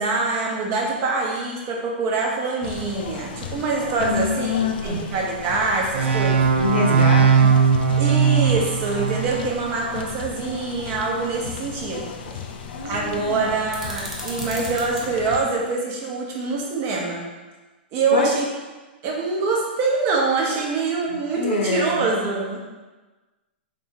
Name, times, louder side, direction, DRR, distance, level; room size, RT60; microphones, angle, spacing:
voice 1, 0.0-6.4 8.0-12.4 12.8-17.2 17.9-18.4 19.0-22.6, right 3 dB, 35° right, -1 dB, 0.9 m, -25 dB
sound 1, 2.6-15.4, left 6 dB, 60° left, 0.3 m, -36 dB
voice 2, 4.0-5.1 6.5-7.5 12.7-13.5 18.1-18.3 21.3-22.0, left 3 dB, 85° left, 1 dB, 0.7 m, -25 dB
sound 2, 5.9-9.6, right 6 dB, 85° right, 0.4 m, -18 dB
sound 3, 13.7-15.1, equal, 5° right, 0.6 m, -35 dB
3.5 x 2.6 x 3.6 m, 1.2 s
hypercardioid pair, 135°, 6 cm